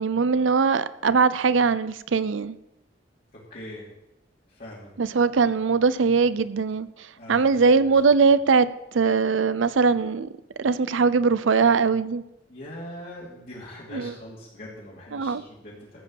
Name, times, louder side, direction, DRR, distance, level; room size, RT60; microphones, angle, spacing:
voice 1, 0.0-2.6 5.0-6.9 7.3-10.3 10.6-12.2 13.9-14.1 15.1-15.4, right 5 dB, 90° right, 15 dB, 0.6 m, -21 dB
voice 2, 3.5-3.9 4.5-4.9 7.2-8.3 12.5-16.0, left 1 dB, 50° left, -7 dB, 2.8 m, -42 dB
14.5 x 5.3 x 7.8 m, 0.90 s
head